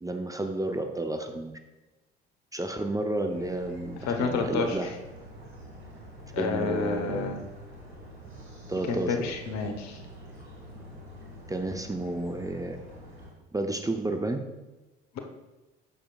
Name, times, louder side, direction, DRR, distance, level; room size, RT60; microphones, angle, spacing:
voice 1, 0.0-1.5 2.5-4.9 6.4-7.5 8.7-9.3 11.5-12.8 13.5-14.5, right 2 dB, 10° right, 5 dB, 0.7 m, -31 dB
sound 1, 3.3-13.3, equal, 90° right, 2.0 m, -46 dB
voice 2, 4.0-4.8 6.3-7.4 8.9-10.0, left 5 dB, 60° left, 5 dB, 1.1 m, -29 dB
9.0 x 6.7 x 2.4 m, 1.1 s
hypercardioid pair, 55°, 31 cm